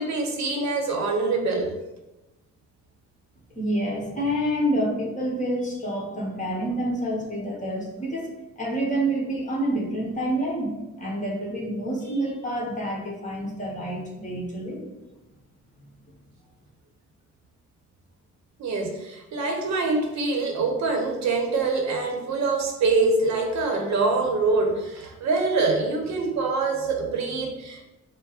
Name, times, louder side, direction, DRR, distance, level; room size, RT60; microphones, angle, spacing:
voice 1, 0.0-1.7 18.6-27.9, right 3 dB, 65° right, 3 dB, 0.8 m, -25 dB
voice 2, 3.5-8.3 8.6-14.9, right 1 dB, 25° left, -3 dB, 1.3 m, -28 dB
4.8 x 2.1 x 4.0 m, 0.99 s
cardioid pair, 90°, 30 cm